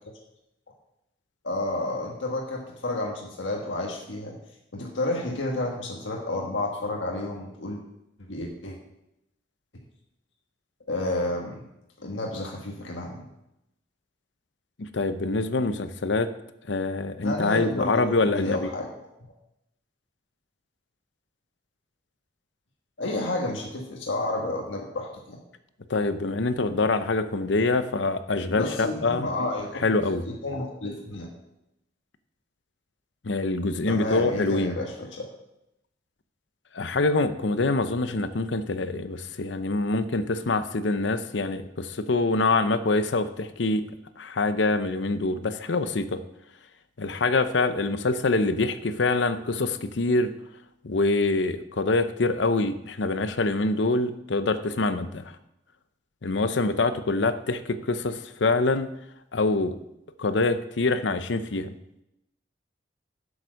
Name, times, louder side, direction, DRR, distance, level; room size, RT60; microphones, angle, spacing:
voice 1, 1.4-4.4 4.7-7.8 8.3-8.8 10.9-11.7 12.0-13.2 17.2-18.9 23.0-25.4 28.5-29.8 30.3-31.3 33.8-35.3, left 2 dB, 90° left, 0 dB, 1.5 m, -31 dB
voice 2, 14.8-16.3 16.7-18.7 25.9-29.3 29.7-30.2 33.2-34.8 36.7-43.8 44.2-46.2 47.0-50.3 50.8-55.3 56.2-58.9 59.3-59.8 60.2-61.7, left 3 dB, 75° left, 11 dB, 0.7 m, -25 dB
7.9 x 7.3 x 6.3 m, 0.85 s
head